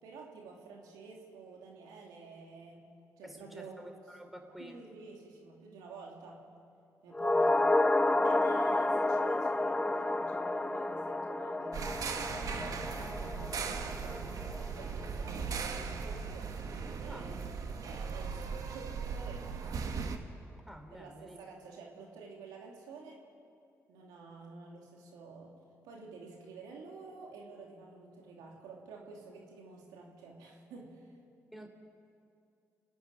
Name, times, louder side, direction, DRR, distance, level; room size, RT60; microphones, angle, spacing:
voice 1, 0.0-2.9 3.2-3.9 4.6-6.5 7.0-17.5 17.8-19.6 20.9-23.2 23.9-25.5 25.8-31.1, right 4 dB, 85° right, -1 dB, 2.9 m, -50 dB
voice 2, 3.2-4.8 7.3-7.5 17.1-17.3 20.7-21.4 31.5-31.7, equal, ahead, 4 dB, 3.8 m, -49 dB
sound 1, 7.1-15.6 15.9-16.0, left 2 dB, 15° left, 0.7 m, -31 dB
sound 2, 11.7-20.2, right 5 dB, 65° right, 1.6 m, -38 dB
29.5 x 10.0 x 9.5 m, 2.5 s
supercardioid pair, 55°, 6 cm